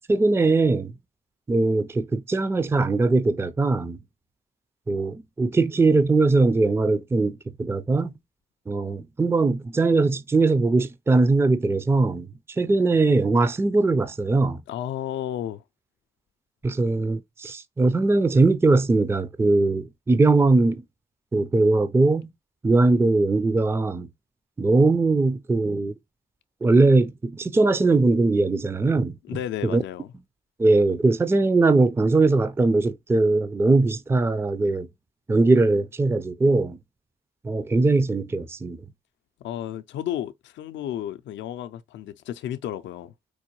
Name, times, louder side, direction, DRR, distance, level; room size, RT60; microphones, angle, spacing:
voice 1, 0.1-0.9 1.5-4.0 4.9-8.1 8.7-12.3 12.6-14.6 16.6-20.8 21.3-22.3 22.6-24.1 24.6-26.0 26.6-29.2 29.6-29.8 30.6-34.9 35.3-36.8 37.4-38.8, right 3 dB, 10° right, 0.4 m, -20 dB
voice 2, 14.7-15.6 29.3-30.1 39.4-43.1, left 11 dB, 70° left, 0.4 m, -32 dB
4.6 x 2.2 x 2.9 m
supercardioid pair, 60°, 20 cm